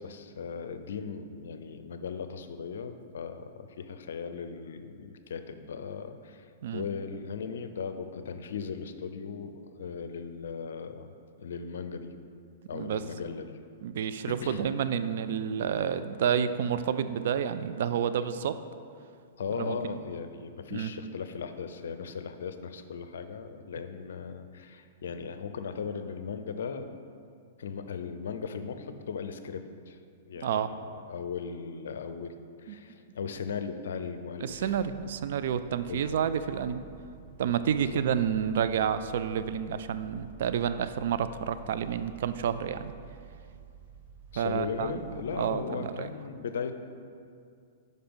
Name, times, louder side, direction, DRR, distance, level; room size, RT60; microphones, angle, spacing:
voice 1, 0.0-11.1 11.4-12.1 12.7-13.6 14.4-14.7 19.4-27.0 27.6-30.0 30.2-30.7 31.0-34.8 35.9-36.2 37.7-38.0 44.3-46.7, left 6 dB, 75° left, 9 dB, 0.5 m, -38 dB
voice 2, 13.8-18.6 19.6-19.8 20.7-20.9 30.4-30.7 32.7-32.8 34.4-36.8 37.4-42.9 44.4-44.9 45.4-46.1, right 8 dB, 65° right, 12 dB, 0.3 m, -29 dB
sound 1, 34.5-45.6, right 8 dB, 40° right, 0.9 m, -51 dB
5.3 x 5.0 x 6.1 m, 2.3 s
hypercardioid pair, 115°, 0 cm